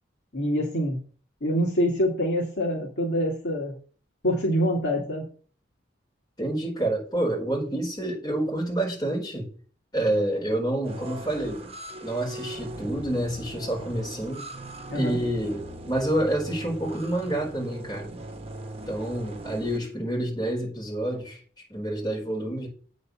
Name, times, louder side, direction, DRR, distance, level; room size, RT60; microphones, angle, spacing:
voice 1, 0.3-1.0 1.4-3.7 4.2-5.2 14.9-15.2, equal, 60° left, 2.2 m, -25 dB
voice 2, 6.4-9.5 9.9-11.7 12.0-14.4 14.9-18.2 18.9-21.4 21.7-22.7, right 1 dB, 20° left, 4.3 m, -28 dB
sound 1, 10.8-19.8, right 1 dB, 30° right, 1.3 m, -40 dB
8.7 x 4.2 x 6.9 m
head